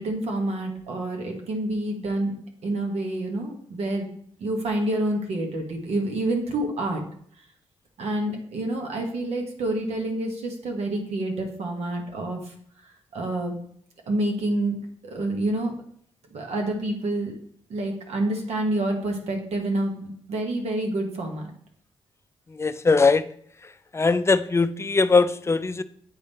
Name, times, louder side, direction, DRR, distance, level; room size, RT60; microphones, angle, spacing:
voice 1, 0.0-2.3 2.6-4.1 4.4-7.0 8.0-12.5 13.1-13.5 14.1-15.7 16.3-17.4 17.7-21.5, right 1 dB, 80° right, 2 dB, 1.3 m, -28 dB
voice 2, 22.6-23.3 23.9-25.8, left 4 dB, 25° left, 12 dB, 0.4 m, -20 dB
8.6 x 3.7 x 4.1 m, 0.62 s
cardioid pair, 65°, 11 cm